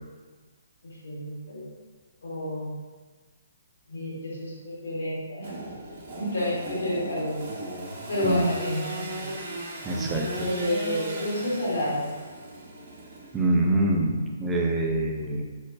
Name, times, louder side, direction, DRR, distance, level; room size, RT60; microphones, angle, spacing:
voice 1, 0.8-1.7 2.2-2.7 3.9-5.5 6.2-7.4 8.1-9.2 10.4-12.1, left 1 dB, 80° left, -5 dB, 1.2 m, -30 dB
Engine / Sawing, 5.4-13.7, right 1 dB, 45° right, 0.7 m, -37 dB
voice 2, 9.8-10.5 13.3-15.4, right 1 dB, 10° right, -1 dB, 0.4 m, -25 dB
4.1 x 2.1 x 2.5 m, 1.4 s
hypercardioid pair, 150°, 0 cm